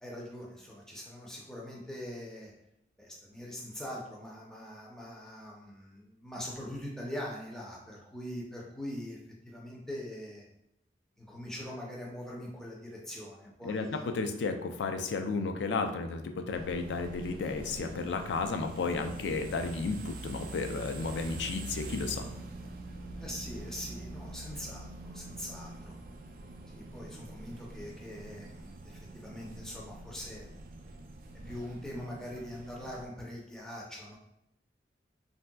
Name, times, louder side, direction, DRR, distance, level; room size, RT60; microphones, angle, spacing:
voice 1, 0.0-2.5 3.0-9.2 9.4-10.5 11.2-14.1 23.2-25.9 26.7-30.5 31.5-34.2, left 1 dB, 5° left, -4 dB, 0.5 m, -42 dB
voice 2, 13.6-22.2, left 4 dB, 90° left, 6 dB, 0.4 m, -33 dB
sound 1, 16.5-33.1, right 2 dB, 55° right, 0.3 m, -45 dB
3.2 x 2.7 x 2.2 m, 0.84 s
head